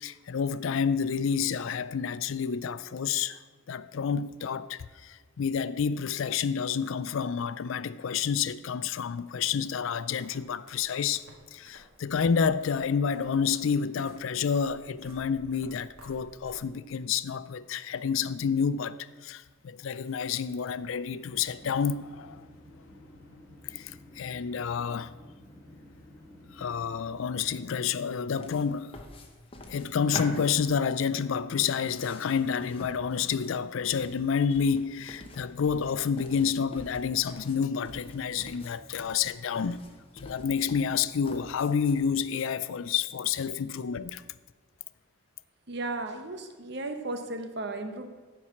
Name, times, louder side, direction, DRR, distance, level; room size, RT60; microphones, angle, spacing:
voice 1, 0.0-3.4 3.7-11.2 11.5-19.0 19.2-22.4 23.6-25.1 26.5-29.0 29.7-39.9 40.2-44.2, left 6 dB, 70° left, 0.4 m, -29 dB
sound 1, 9.7-17.0, right 1 dB, 85° right, 1.9 m, -55 dB
sound 2, 21.3-27.5, left 1 dB, 10° left, 1.9 m, -52 dB
sound 3, 28.3-42.1, left 2 dB, 25° left, 0.9 m, -46 dB
voice 2, 45.7-48.1, right 2 dB, 50° right, 0.9 m, -35 dB
9.8 x 4.7 x 7.0 m
head